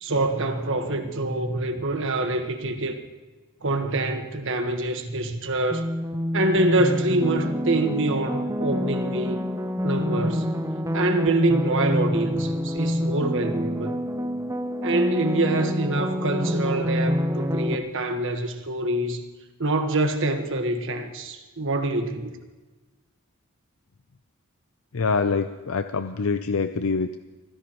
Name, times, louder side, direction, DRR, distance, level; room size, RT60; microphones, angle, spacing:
voice 1, 0.0-3.0 3.6-5.9 6.3-9.4 9.8-10.4 10.9-14.0 14.8-19.2 19.6-22.4, right 2 dB, 65° right, 5 dB, 1.5 m, -25 dB
sound 1, 5.7-17.8, equal, 15° right, 0.7 m, -27 dB
voice 2, 24.9-27.2, left 4 dB, 75° left, 9 dB, 0.6 m, -25 dB
25.0 x 15.5 x 3.1 m, 1.2 s
head